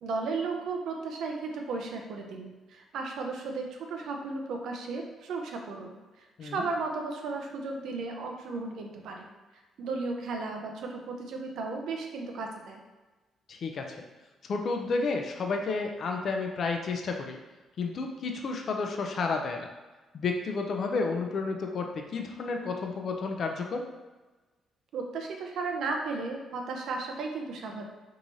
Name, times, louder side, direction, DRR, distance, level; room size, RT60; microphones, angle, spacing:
voice 1, 0.0-9.3 9.5-12.8 24.9-27.9, right 3 dB, 75° right, 2 dB, 0.5 m, -35 dB
voice 2, 13.5-14.0 14.5-17.4 17.8-19.7 20.1-23.8, left 4 dB, 55° left, 3 dB, 0.4 m, -31 dB
3.6 x 3.1 x 2.6 m, 1.2 s
cardioid pair, 90°, 0 cm